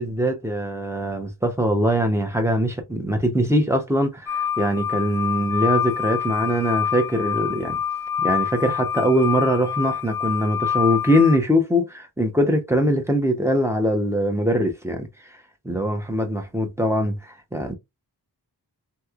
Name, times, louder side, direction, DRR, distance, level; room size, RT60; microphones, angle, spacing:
voice 1, 0.0-7.8 8.2-15.1 15.6-17.7, equal, 5° right, 0.7 m, -22 dB
sound 1, 4.3-11.4, left 8 dB, 55° left, 0.5 m, -26 dB
3.1 x 2.8 x 2.4 m
wide cardioid pair, 85°, 42 cm